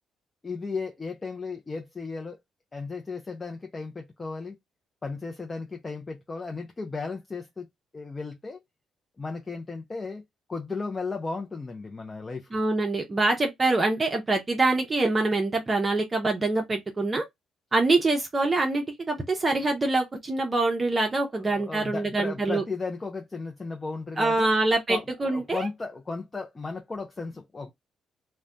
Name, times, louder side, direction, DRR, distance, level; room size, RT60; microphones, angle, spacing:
voice 1, 0.4-2.4 2.7-4.6 5.0-7.7 7.9-8.6 9.2-10.2 10.5-12.6 21.4-24.5 24.9-27.7, left 4 dB, 25° left, 0.5 m, -35 dB
voice 2, 12.5-17.2 17.7-22.6 24.2-25.7, right 2 dB, 30° right, 0.6 m, -25 dB
2.5 x 2.2 x 3.2 m
cardioid pair, 90°, 0 cm